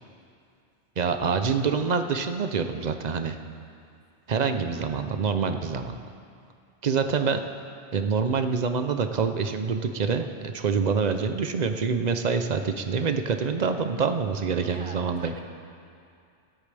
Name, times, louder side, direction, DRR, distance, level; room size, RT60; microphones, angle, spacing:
voice 1, 1.0-3.4 4.3-6.0 6.8-7.4 7.9-15.3, right 5 dB, 45° right, 7 dB, 0.7 m, -26 dB
voice 2, 4.7-5.1 14.7-15.4, right 2 dB, 30° right, 1 dB, 1.1 m, -44 dB
24.0 x 8.4 x 3.4 m, 2.4 s
omnidirectional pair, 1.2 m